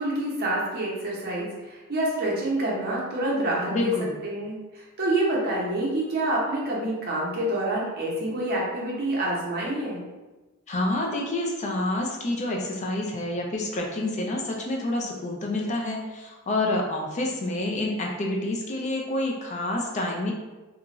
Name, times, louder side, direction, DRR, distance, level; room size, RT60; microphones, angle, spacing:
voice 1, 0.0-3.9 4.2-10.0, right 1 dB, 50° right, -4 dB, 0.8 m, -27 dB
voice 2, 3.7-4.1 10.7-20.3, left 1 dB, 35° left, 0 dB, 0.4 m, -28 dB
2.4 x 2.3 x 2.9 m, 1.2 s
head